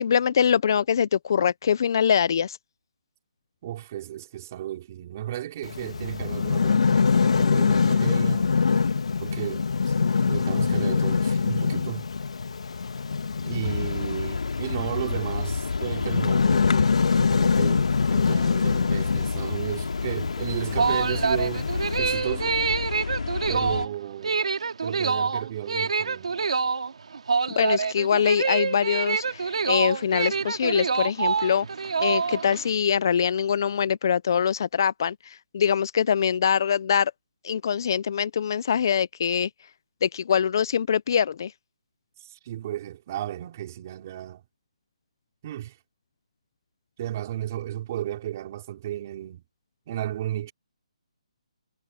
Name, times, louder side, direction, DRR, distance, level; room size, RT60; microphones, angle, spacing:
voice 1, 0.0-2.6 27.6-31.7 32.0-37.1 37.4-39.5 40.0-41.5, left 7 dB, 35° left, 0.5 m, -23 dB
voice 2, 3.6-8.5 9.2-12.1 13.4-21.7 22.0-22.6 23.5-24.5 24.8-26.4 42.2-44.4 45.4-45.8 47.0-49.4 49.9-50.5, right 12 dB, 25° right, 5.1 m, -34 dB
sound 1, 5.6-22.0, left 5 dB, 65° left, 2.2 m, -24 dB
sound 2, 13.6-23.9, left 4 dB, 85° left, 3.3 m, -31 dB
sound 3, 20.5-32.6, right 5 dB, 65° right, 2.6 m, -26 dB
hypercardioid pair, 175°, 4 cm